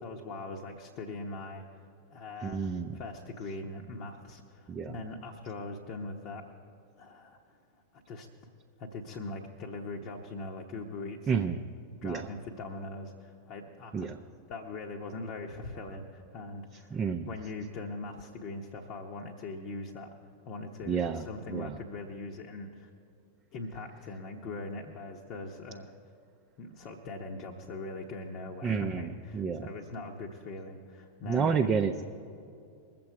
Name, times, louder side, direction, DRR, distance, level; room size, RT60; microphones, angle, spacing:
voice 1, 0.0-6.4 7.0-7.6 7.9-8.3 8.8-11.5 12.0-14.1 14.5-20.1 20.5-22.9 23.5-25.9 26.6-31.7, left 2 dB, 40° left, 0 dB, 1.0 m, -41 dB
voice 2, 2.4-2.9 4.7-4.9 11.3-11.6 12.0-12.2 13.9-14.2 16.9-17.3 20.9-21.2 21.5-21.7 28.6-29.6 31.3-32.1, right 6 dB, 20° right, 3 dB, 0.5 m, -30 dB
21.5 x 7.7 x 4.6 m, 2.5 s
figure-of-eight pair, 90°, 0 cm